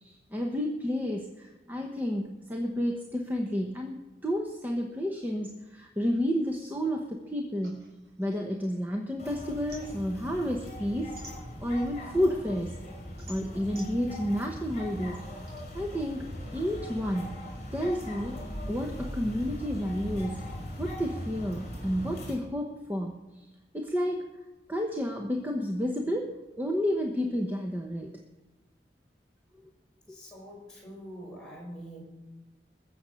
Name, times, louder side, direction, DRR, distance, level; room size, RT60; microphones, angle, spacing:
voice 1, 0.0-4.0 4.2-7.9 8.2-11.2 11.6-12.8 13.3-15.2 15.7-16.3 16.5-17.4 17.7-18.4 18.7-20.5 20.8-23.5 23.7-24.2 24.7-28.1, equal, 10° right, 1 dB, 1.0 m, -31 dB
sound 1, 7.6-9.1 9.4-12.0 12.4-15.6, equal, 65° right, 4.5 m, -51 dB
sound 2, 9.2-22.3, equal, 40° left, 5.2 m, -40 dB
voice 2, 30.1-32.0, equal, 5° left, -6 dB, 6.0 m, -44 dB
21.0 x 7.1 x 6.4 m, 1.1 s
head